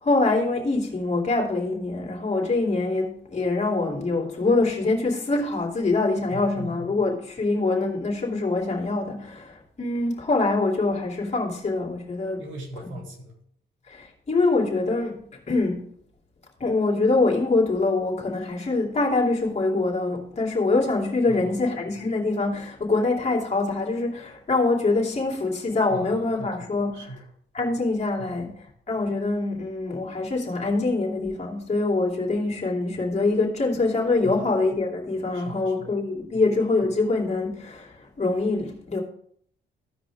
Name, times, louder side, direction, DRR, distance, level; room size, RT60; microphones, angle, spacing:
voice 1, 0.0-12.4 13.9-15.2 15.5-15.8 16.6-27.0 27.5-28.5 28.9-39.0, left 3 dB, 35° left, 2.8 m, -24 dB
voice 2, 6.3-6.9 12.4-13.4 21.3-21.6 25.9-26.5 26.9-27.3 28.2-28.4 34.2-34.4 35.3-35.9 36.3-36.5, right 1 dB, 75° right, 2.6 m, -40 dB
15.0 x 5.0 x 3.5 m
cardioid pair, 90°, 20 cm